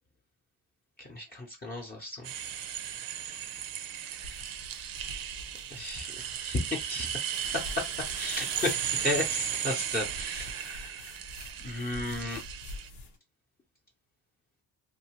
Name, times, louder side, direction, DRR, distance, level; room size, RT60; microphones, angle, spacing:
voice 1, 1.0-2.3 5.7-7.1 7.5-7.9 8.2-11.1 11.6-12.4, left 1 dB, 25° left, 0.7 m, -34 dB
sound 1, 2.2-12.9, right 10 dB, 60° right, 0.5 m, -36 dB
sound 2, 4.2-6.5 7.3-9.2 9.9-13.2, left 3 dB, 90° left, 1.0 m, -46 dB
2.8 x 2.5 x 2.9 m
cardioid pair, 105°, 40 cm